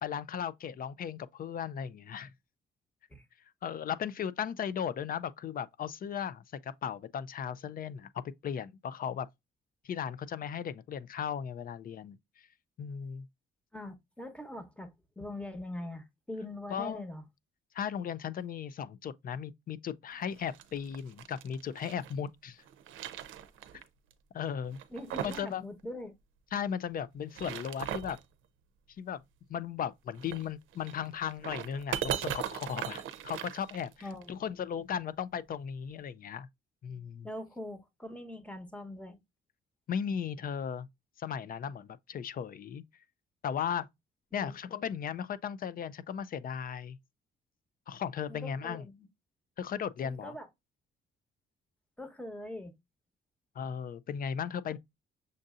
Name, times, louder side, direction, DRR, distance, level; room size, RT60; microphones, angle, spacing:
voice 1, 0.0-2.3 3.6-9.3 9.8-12.5 12.8-13.3 16.7-17.0 17.7-22.6 24.3-24.8 25.2-25.6 26.5-28.2 29.0-29.2 29.5-36.5 36.8-37.3 39.9-40.9 41.2-42.8 43.4-43.9 44.3-47.0 47.9-48.8 49.6-50.3 53.6-54.8, left 8 dB, 45° left, 0.4 m, -36 dB
voice 2, 13.7-17.2 24.9-26.1 34.0-34.6 37.2-39.2 44.3-44.6 48.3-49.1 50.0-50.5 52.0-52.7, left 1 dB, 5° left, 1.0 m, -42 dB
sound 1, 20.3-22.1 22.6-23.8 24.1-24.2 24.7-25.5 25.8-25.9 27.1-28.2 30.1-34.2, right 10 dB, 80° right, 0.6 m, -39 dB
6.4 x 2.6 x 2.4 m
cardioid pair, 90°, 20 cm